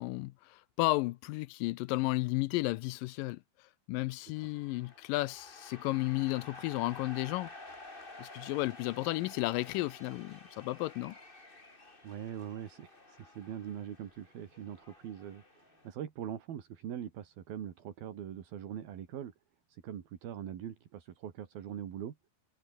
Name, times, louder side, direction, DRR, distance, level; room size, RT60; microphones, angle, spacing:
voice 1, 0.0-3.4 3.9-7.5 8.2-11.2, left 20 dB, 85° left, 2.0 m, -33 dB
sound 1, 4.4-15.9, left 2 dB, 15° left, 3.0 m, -52 dB
voice 2, 12.0-19.3 19.7-22.2, right 10 dB, 70° right, 4.1 m, -42 dB
omnidirectional pair, 4.4 m